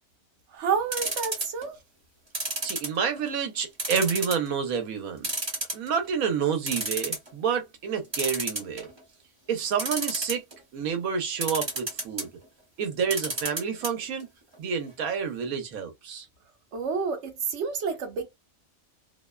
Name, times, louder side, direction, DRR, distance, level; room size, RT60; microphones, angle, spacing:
voice 1, 0.5-1.8 16.7-18.3, right 6 dB, 60° right, 0.9 m, -29 dB
sound 1, 0.9-1.6 2.3-3.3 3.8-4.5 4.8-4.9 5.2-6.1 6.4-6.5 6.7-7.3 8.1-9.0 9.7-10.5 11.4-12.3 13.0-13.9 14.2-14.3 14.5-14.6, right 1 dB, 25° right, 0.6 m, -30 dB
voice 2, 2.6-5.3 5.7-8.9 9.5-10.4 10.7-12.3 12.8-14.3 14.6-16.3, right 6 dB, 80° right, 1.1 m, -29 dB
2.7 x 2.1 x 2.2 m
omnidirectional pair, 1.4 m